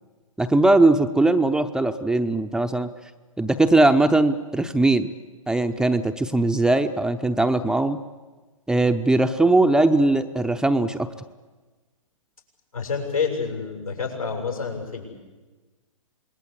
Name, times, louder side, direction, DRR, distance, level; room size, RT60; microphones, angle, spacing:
voice 1, 0.4-2.9 3.4-5.1 5.5-8.0 8.7-11.1, right 2 dB, 5° right, 7 dB, 0.7 m, -20 dB
voice 2, 12.7-15.1, left 5 dB, 85° left, 2 dB, 7.4 m, -28 dB
27.0 x 20.5 x 8.6 m, 1.3 s
figure-of-eight pair, 120°, 18 cm